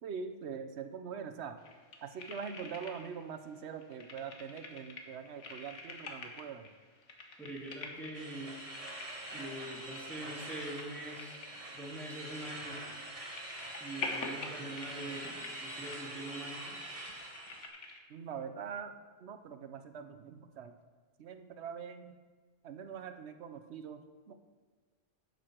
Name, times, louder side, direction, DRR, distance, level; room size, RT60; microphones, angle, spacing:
voice 1, 0.0-1.6 2.0-6.7 18.1-18.9 19.2-20.7 21.2-22.2 22.6-24.3, right 6 dB, 70° right, 8 dB, 1.0 m, -43 dB
sound 1, 1.6-3.3 3.6-18.0, left 3 dB, 80° left, 1.4 m, -47 dB
voice 2, 7.4-8.6 9.3-11.5 11.7-12.8 13.8-16.7, right 1 dB, ahead, -4 dB, 2.1 m, -44 dB
sound 2, 8.1-17.7, right 1 dB, 30° right, 1.4 m, -45 dB
11.5 x 8.0 x 4.5 m, 1.4 s
omnidirectional pair, 1.2 m